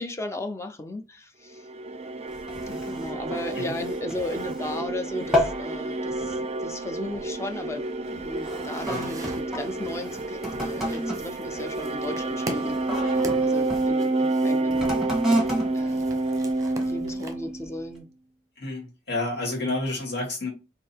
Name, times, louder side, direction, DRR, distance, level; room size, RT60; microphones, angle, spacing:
voice 1, 0.0-1.7 2.7-14.9 15.7-16.1 16.8-18.1, left 2 dB, 15° left, 0.5 m, -36 dB
sound 1, 1.6-17.9, right 2 dB, 35° right, 0.4 m, -29 dB
sound 2, 2.3-4.9 5.2-5.7 6.1-6.4 7.1-7.3 8.0-13.9 14.6-17.0 17.6-17.7, equal, 5° right, 1.4 m, -31 dB
sound 3, 8.1-17.3, right 2 dB, 20° right, 0.8 m, -42 dB
voice 2, 18.6-20.5, left 2 dB, 65° left, 2.1 m, -29 dB
3.8 x 2.8 x 4.4 m
head